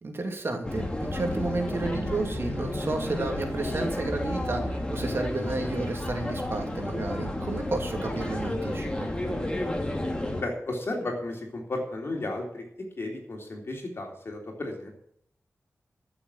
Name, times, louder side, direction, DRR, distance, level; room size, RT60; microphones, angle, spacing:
voice 1, 0.0-9.1, right 2 dB, 50° right, 3 dB, 2.7 m, -32 dB
sound 1, 0.6-10.4, left 1 dB, 20° left, 2.1 m, -31 dB
voice 2, 10.4-12.6 13.0-14.9, left 2 dB, 55° left, 1 dB, 3.6 m, -33 dB
13.5 x 7.0 x 7.4 m, 0.68 s
wide cardioid pair, 95°, 5 cm